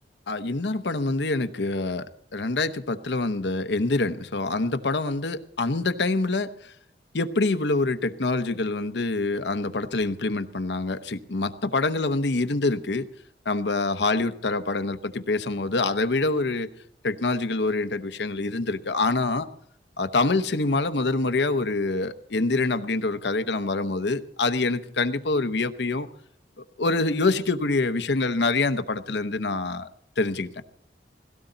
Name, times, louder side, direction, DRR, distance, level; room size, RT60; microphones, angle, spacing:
voice 1, 0.3-2.1 2.3-6.7 7.1-13.1 13.5-16.7 17.0-19.5 20.0-26.1 26.8-29.9 30.2-30.5, left 3 dB, 70° left, 10 dB, 0.9 m, -25 dB
17.0 x 17.0 x 4.0 m, 0.67 s
head